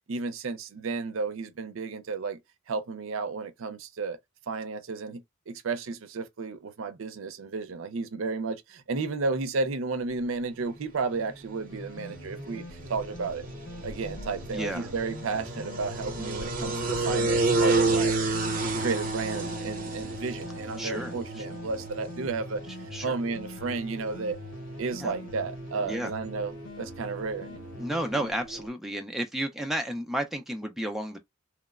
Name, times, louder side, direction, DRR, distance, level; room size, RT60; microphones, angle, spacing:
voice 1, 0.1-2.4 2.7-4.2 4.5-12.6 12.9-13.5 13.8-18.1 18.8-22.6 23.0-24.4 24.8-27.7, right 4 dB, 75° right, 0.5 m, -32 dB
sound 1, 10.6-28.7, right 3 dB, 40° right, 0.7 m, -32 dB
sound 2, 11.7-28.3, left 2 dB, 80° left, 0.7 m, -44 dB
voice 2, 14.5-14.9 20.8-21.5 22.9-23.2 25.0-25.1 25.8-26.1 27.8-31.2, right 1 dB, ahead, 0.3 m, -32 dB
3.0 x 2.0 x 2.2 m
head